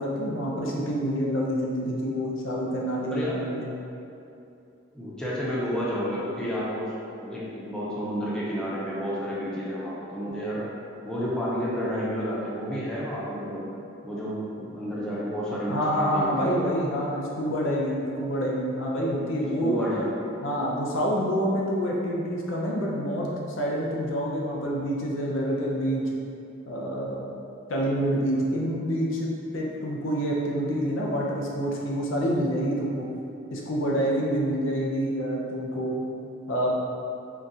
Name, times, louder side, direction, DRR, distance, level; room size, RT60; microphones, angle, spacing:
voice 1, 0.0-3.6 15.7-19.8 20.4-23.3 23.6-26.0 26.7-27.3 27.7-33.1 33.5-36.0 36.5-36.7, equal, 75° left, -3 dB, 0.5 m, -27 dB
voice 2, 3.1-3.5 4.9-6.9 7.2-10.7 11.0-13.7 14.0-16.8 19.6-20.2, equal, 5° left, -8 dB, 0.5 m, -30 dB
3.7 x 2.4 x 2.7 m, 2.6 s
head